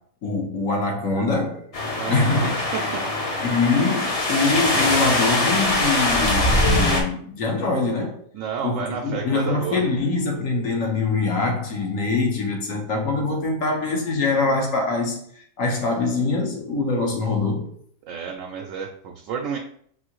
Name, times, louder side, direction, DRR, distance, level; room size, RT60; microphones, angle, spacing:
voice 1, 0.2-1.7 2.1-2.5 3.4-8.2 8.6-17.7, left 3 dB, 75° left, 1 dB, 1.4 m, -24 dB
sound 1, 1.7-7.0, left 1 dB, 35° left, 0.6 m, -22 dB
voice 2, 2.0-3.0 8.3-9.8 18.0-19.6, right 7 dB, 75° right, 1 dB, 0.9 m, -30 dB
6.1 x 2.7 x 3.0 m, 0.62 s
omnidirectional pair, 1.4 m